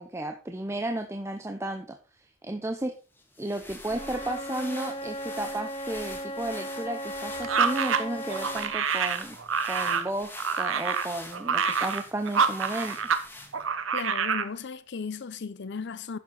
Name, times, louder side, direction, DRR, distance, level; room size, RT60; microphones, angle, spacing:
voice 1, 0.0-2.0 2.4-2.9 3.4-9.4 9.6-13.0, right 1 dB, 15° right, 0.8 m, -33 dB
sound 1, 3.2-13.8, left 2 dB, 10° left, 1.8 m, -45 dB
Wind instrument woodwind instrument, 3.8-8.8, equal, 30° left, 1.5 m, -37 dB
sound 2, 7.4-13.2 13.5-14.5, right 6 dB, 80° right, 0.9 m, -27 dB
voice 2, 13.9-16.2, left 5 dB, 60° left, 0.6 m, -36 dB
10.5 x 7.4 x 3.9 m
head